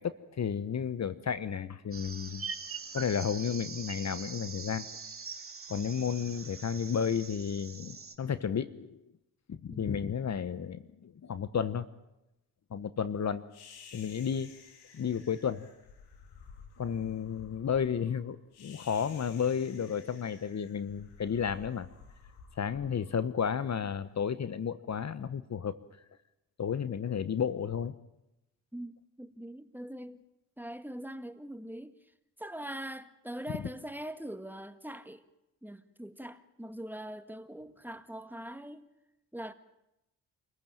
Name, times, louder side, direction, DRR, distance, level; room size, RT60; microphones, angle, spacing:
voice 1, 0.0-2.4 2.9-4.9 5.7-9.0 9.5-11.9 12.7-13.4 13.9-14.5 14.9-15.7 16.8-21.9 22.6-25.8 26.6-27.9, left 7 dB, 45° left, 1.1 m, -32 dB
sound 1, 1.9-8.1, right 5 dB, 35° right, 2.7 m, -43 dB
voice 2, 9.7-10.0 28.7-30.2 30.6-31.9 32.4-35.2 35.6-38.9 39.3-39.5, right 1 dB, 5° right, 1.7 m, -42 dB
sound 2, 13.5-23.9, left 5 dB, 80° left, 3.3 m, -54 dB
27.0 x 15.5 x 9.1 m
supercardioid pair, 50°, 38 cm